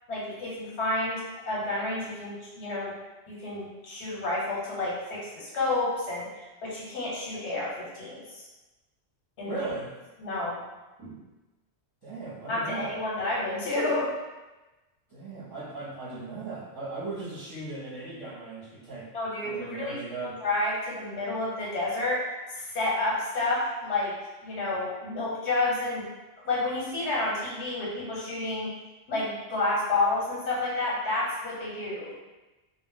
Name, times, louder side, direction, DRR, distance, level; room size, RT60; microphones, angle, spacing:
voice 1, 0.1-2.9 3.3-8.4 9.4-9.6 10.2-10.6 12.5-14.1 19.1-19.9 20.4-22.2 22.5-24.1 24.4-26.1 26.4-28.7 29.1-32.2, left 2 dB, 75° left, -6 dB, 1.2 m, -30 dB
voice 2, 9.5-9.9 11.0-11.2 12.0-13.0 15.1-19.1 19.4-20.4, right 3 dB, 25° right, -13 dB, 0.7 m, -37 dB
2.4 x 2.1 x 3.6 m, 1.1 s
omnidirectional pair, 1.1 m